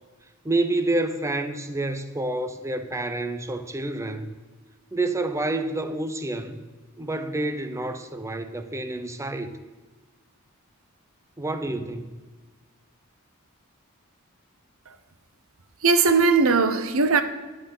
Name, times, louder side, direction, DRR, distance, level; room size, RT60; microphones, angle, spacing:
voice 1, 0.4-4.3 4.9-6.6 7.0-9.5 11.4-12.1, right 2 dB, 15° right, 0.7 m, -28 dB
voice 2, 15.8-17.2, right 4 dB, 65° right, 0.8 m, -19 dB
11.0 x 8.9 x 5.5 m
head